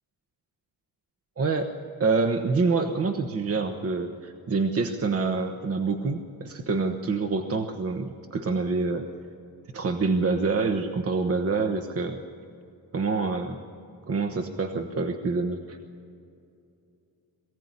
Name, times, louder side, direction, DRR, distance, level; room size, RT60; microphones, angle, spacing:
voice 1, 1.4-1.7 2.0-9.1 9.7-12.2 12.9-13.6 14.1-15.8, right 4 dB, 40° right, 6 dB, 1.2 m, -26 dB
23.0 x 16.5 x 9.8 m, 2.6 s
wide cardioid pair, 145°, 38 cm